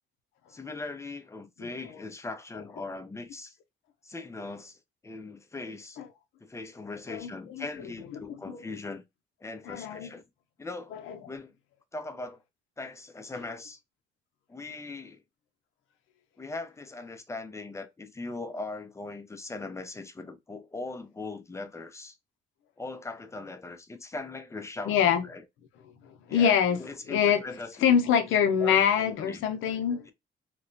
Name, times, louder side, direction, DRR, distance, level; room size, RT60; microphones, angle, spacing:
voice 1, 0.5-3.6 4.0-6.0 6.4-9.0 9.4-10.2 10.6-10.9 11.3-11.5 11.9-12.4 12.8-13.8 14.5-15.2 16.4-22.2 22.8-25.0 25.2-25.4 26.3-26.5 26.8-27.9 28.6-29.4, left 3 dB, 15° left, 0.5 m, -40 dB
voice 2, 7.1-7.7 8.5-8.6 9.7-10.1 10.9-11.2 24.9-25.2 26.1-27.4 27.8-30.0, left 8 dB, 85° left, 0.6 m, -25 dB
3.0 x 2.1 x 2.5 m
cardioid pair, 90°, 20 cm